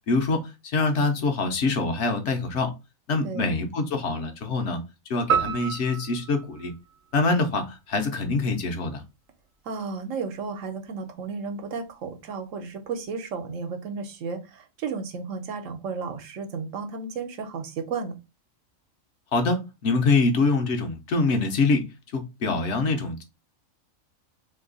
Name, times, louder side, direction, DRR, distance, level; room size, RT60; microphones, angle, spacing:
voice 1, 0.1-2.7 3.1-4.8 5.1-6.7 7.1-9.0 19.3-21.9 22.1-23.2, left 3 dB, 65° left, 1.0 m, -25 dB
voice 2, 3.2-3.5 9.6-18.1, right 5 dB, 75° right, 1.1 m, -33 dB
sound 1, 5.3-7.8, right 7 dB, 45° right, 0.7 m, -29 dB
2.9 x 2.7 x 3.9 m
omnidirectional pair, 1.4 m